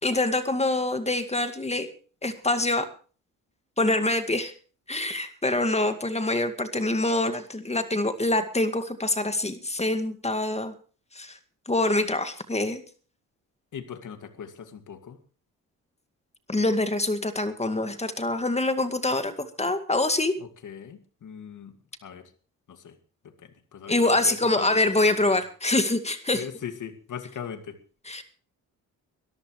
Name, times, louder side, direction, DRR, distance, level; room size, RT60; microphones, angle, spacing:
voice 1, 0.0-1.9 2.2-2.9 3.8-4.5 4.9-10.7 11.2-11.4 11.7-12.8 16.5-20.3 23.9-26.5 28.1-28.2, left 2 dB, 20° left, 9 dB, 2.1 m, -25 dB
voice 2, 13.7-15.2 20.4-21.7 22.0-22.3 22.7-23.0 23.2-25.4 26.3-27.8, left 8 dB, 60° left, 9 dB, 2.3 m, -40 dB
22.0 x 14.0 x 3.3 m, 0.39 s
supercardioid pair, 70°, 35 cm